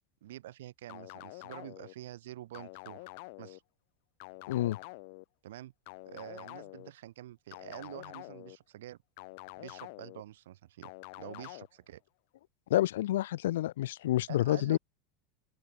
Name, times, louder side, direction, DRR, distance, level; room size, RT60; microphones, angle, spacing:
voice 1, 0.2-3.1 3.4-3.6 5.4-5.7 6.1-9.0 9.6-10.9 11.2-12.0 14.3-14.8, right 14 dB, 90° right, 2.0 m, -47 dB
sound 1, 0.9-1.9 2.5-3.6 4.2-5.2 5.9-6.9 7.5-8.6 9.2-10.2 10.8-11.7, left 28 dB, 50° left, 1.0 m, -47 dB
voice 2, 4.5-4.8 12.7-14.8, left 14 dB, 90° left, 0.4 m, -28 dB
open air
supercardioid pair, 170°, 0 cm